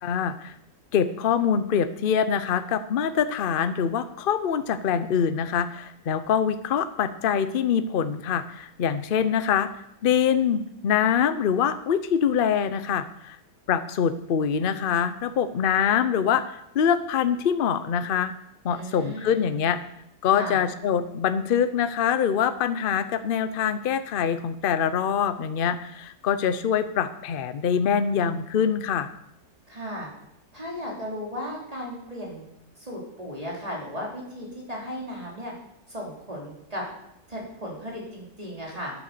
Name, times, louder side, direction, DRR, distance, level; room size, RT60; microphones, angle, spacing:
voice 1, 0.0-0.5 0.9-9.7 10.0-13.4 13.7-18.3 18.6-19.8 20.2-29.1, left 8 dB, 60° left, 11 dB, 0.5 m, -24 dB
voice 2, 18.7-19.4 20.3-20.6 29.7-30.1 30.5-32.4 32.8-35.5 35.9-36.8 37.3-38.9, equal, 20° right, -3 dB, 3.4 m, -35 dB
10.5 x 8.6 x 6.8 m, 0.80 s
omnidirectional pair, 1.9 m